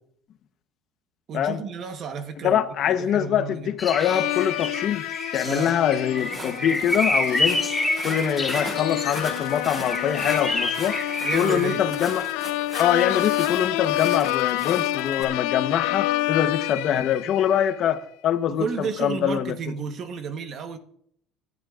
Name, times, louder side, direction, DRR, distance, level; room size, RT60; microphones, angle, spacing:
voice 1, 1.3-2.7 3.0-3.7 5.4-5.7 11.2-11.8 18.5-20.8, right 6 dB, 40° right, 1.1 m, -32 dB
voice 2, 2.4-5.0 5.3-7.6 8.0-11.0 11.3-12.3 12.8-18.7 19.0-19.6, left 9 dB, 40° left, 0.9 m, -24 dB
sound 1, 3.8-11.5, left 1 dB, 5° left, 2.6 m, -28 dB
sound 2, 4.0-17.7, left 16 dB, 85° left, 0.5 m, -28 dB
Walk footsteps, 6.2-15.2, right 1 dB, 20° right, 5.2 m, -39 dB
29.0 x 12.0 x 2.5 m
cardioid pair, 160°, 0 cm